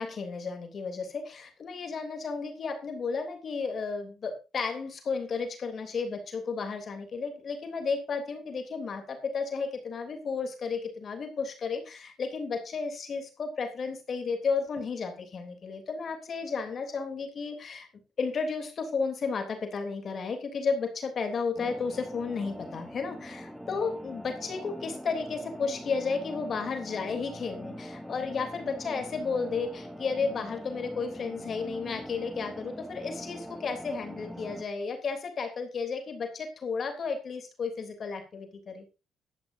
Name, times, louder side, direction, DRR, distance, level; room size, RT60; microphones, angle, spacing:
voice 1, 0.0-17.9 18.2-38.8, left 5 dB, 50° left, 6 dB, 3.2 m, -33 dB
sound 1, 21.5-34.6, equal, ahead, 1.9 m, -42 dB
16.5 x 12.5 x 2.7 m, 0.30 s
cardioid pair, 90°, 0 cm